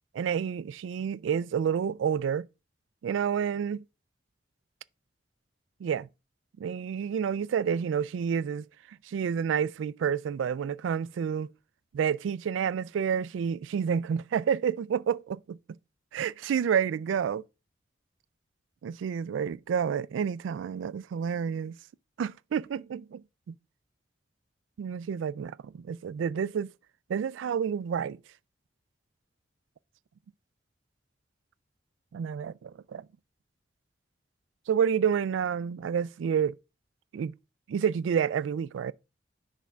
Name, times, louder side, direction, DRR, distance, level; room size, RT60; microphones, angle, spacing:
voice 1, 0.1-2.5 3.0-3.8 5.8-6.1 6.6-11.5 11.9-15.6 16.1-17.4 18.8-21.8 22.2-23.2 23.5-23.6 24.8-26.7 27.1-28.2 32.1-33.1 34.7-36.5 37.1-37.3 37.7-38.9, right 7 dB, 90° right, 0.3 m, -29 dB
6.2 x 3.5 x 5.5 m
head